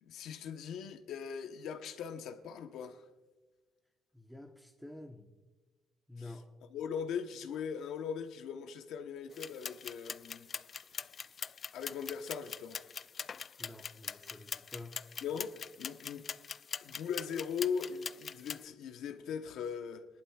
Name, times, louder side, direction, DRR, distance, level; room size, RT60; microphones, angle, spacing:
voice 1, 0.0-3.0 6.2-6.3 6.7-10.5 11.7-12.8 15.2-16.3 16.8-20.1, left 7 dB, 80° left, 1.1 m, -39 dB
voice 2, 4.1-5.3 6.1-6.5 13.6-15.0, left 2 dB, 5° left, 1.1 m, -49 dB
sound 1, 9.3-18.6, left 6 dB, 45° left, 0.3 m, -43 dB
22.0 x 11.5 x 2.5 m
cardioid pair, 90°, 0 cm